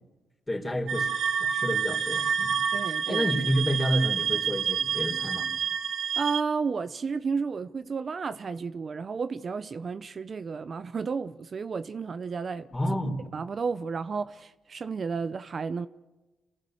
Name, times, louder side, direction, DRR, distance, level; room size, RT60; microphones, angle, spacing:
voice 1, 0.5-1.1 1.4-2.6 2.9-5.5 12.7-13.3, equal, 20° left, 4.0 m, -29 dB
sound 1, 0.9-6.4, right 7 dB, 70° right, 1.2 m, -28 dB
voice 2, 2.7-3.3 6.2-12.7 13.3-15.9, right 5 dB, 50° right, 0.7 m, -32 dB
27.0 x 15.0 x 7.9 m
cardioid pair, 80°, 0 cm